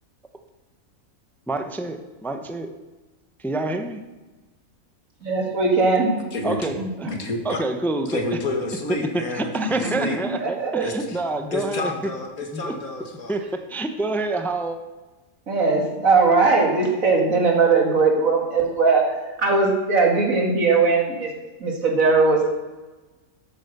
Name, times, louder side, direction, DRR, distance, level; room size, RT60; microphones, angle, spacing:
voice 1, 1.5-2.7 3.4-4.0 6.4-7.1 7.4-8.2 9.1-12.1 12.5-12.7 13.3-14.8, right 2 dB, ahead, 7 dB, 0.7 m, -27 dB
voice 2, 5.2-6.2 6.8-7.1 9.5-11.0 15.5-19.0 19.4-21.3 21.6-22.5, right 4 dB, 70° right, 1 dB, 2.7 m, -20 dB
voice 3, 6.3-6.7 7.1-7.6 8.1-10.2 10.8-11.2 11.5-13.4, left 2 dB, 80° left, 3 dB, 2.3 m, -30 dB
13.0 x 8.4 x 6.7 m, 1.2 s
omnidirectional pair, 1.5 m